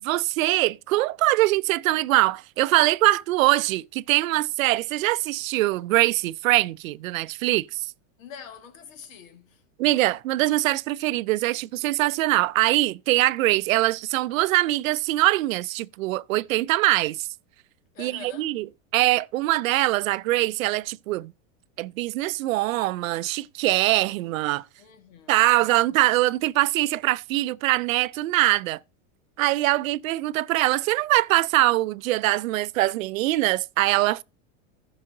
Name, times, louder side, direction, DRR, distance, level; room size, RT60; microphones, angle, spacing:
voice 1, 0.0-7.9 9.8-17.3 18.0-18.6 18.9-21.3 21.8-24.6 25.3-28.8 29.4-34.2, right 17 dB, 85° right, 0.6 m, -23 dB
voice 2, 8.2-9.6 17.9-18.6 24.8-25.9, left 7 dB, 80° left, 2.2 m, -45 dB
14.5 x 5.6 x 3.8 m
supercardioid pair, 135°, 39 cm